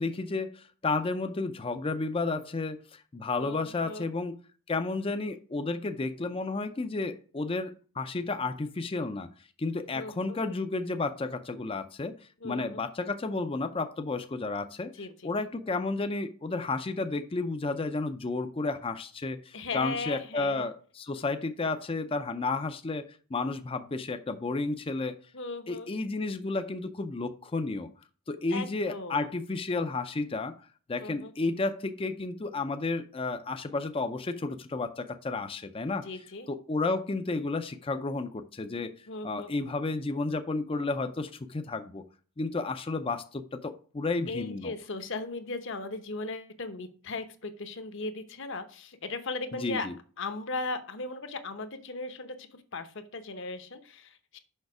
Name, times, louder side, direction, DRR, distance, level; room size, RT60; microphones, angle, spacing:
voice 1, 0.0-4.4 4.7-9.3 9.6-12.2 12.4-14.9 15.2-25.2 25.7-27.9 28.3-30.5 30.9-36.1 36.5-39.0 39.2-42.0 42.4-44.7 49.5-49.9, left 3 dB, 25° left, 0.5 m, -32 dB
voice 2, 3.4-4.1 9.9-10.4 12.4-12.8 14.9-15.3 19.5-20.7 25.3-25.9 28.5-29.3 31.0-31.3 36.0-36.5 39.1-39.5 44.3-49.9 50.2-54.4, left 3 dB, 55° left, 0.9 m, -37 dB
6.5 x 5.8 x 4.8 m
head